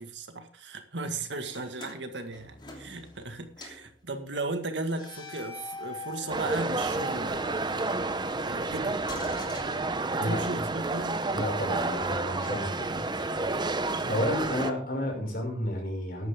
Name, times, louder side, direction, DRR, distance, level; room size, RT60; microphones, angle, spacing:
voice 1, 0.0-7.4 8.4-9.0 10.1-11.2 14.0-14.4, right 2 dB, 80° right, 1.9 m, -36 dB
sound 1, 1.5-3.3 3.6-3.9 4.9-8.1 9.0-10.4, left 3 dB, 25° left, 3.0 m, -44 dB
sound 2, 6.3-14.7, right 3 dB, 25° right, 0.8 m, -30 dB
voice 2, 11.4-13.1 14.1-16.3, left 1 dB, 55° left, 5.9 m, -31 dB
14.5 x 11.0 x 3.7 m
head